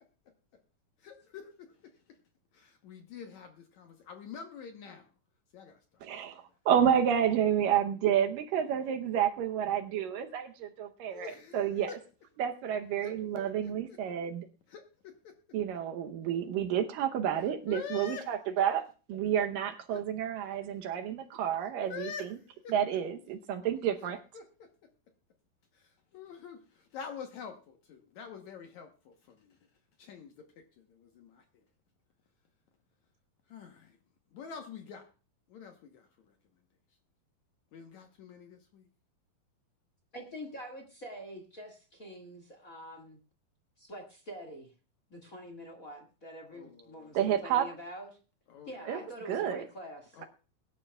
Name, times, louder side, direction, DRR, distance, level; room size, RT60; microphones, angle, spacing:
voice 1, 1.0-1.9 2.5-5.1 5.5-6.4 11.1-12.0 13.0-14.0 14.7-15.3 17.7-18.3 19.9-20.0 21.3-21.4 21.9-22.3 22.6-22.7 24.0-24.7 25.7-29.6 30.0-31.6 33.5-34.0 34.3-35.1 35.5-36.3 37.7-38.9 46.5-47.2 48.5-49.0 50.1-50.2, left 6 dB, 65° left, 5 dB, 2.0 m, -46 dB
voice 2, 6.0-11.9 12.4-14.5 15.5-18.8 19.1-22.1 22.7-24.2 47.1-47.7 48.9-49.0 49.3-49.7, right 9 dB, 75° right, 6 dB, 2.4 m, -30 dB
voice 3, 40.1-43.2 43.8-44.7 45.1-48.1 48.7-50.2, equal, 30° left, 3 dB, 1.6 m, -45 dB
22.0 x 11.5 x 2.3 m, 0.35 s
omnidirectional pair, 4.3 m